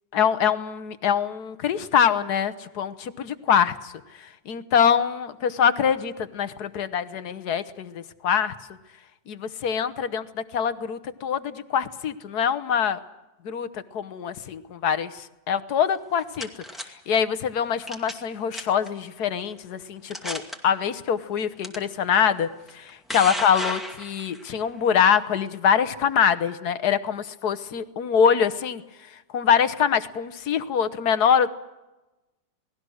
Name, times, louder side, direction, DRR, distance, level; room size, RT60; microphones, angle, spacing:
voice 1, 0.1-3.9 4.5-8.5 9.3-13.0 13.4-16.5 17.1-22.5 22.7-28.8 29.3-31.5, left 7 dB, 65° left, 13 dB, 1.5 m, -24 dB
sound 1, 16.0-16.9 17.9-18.3 18.5-18.9 19.5-19.6 20.1-20.6 21.6-21.8 22.7-24.5, equal, ahead, 2.0 m, -33 dB
28.0 x 19.5 x 6.4 m, 1.1 s
omnidirectional pair, 1.9 m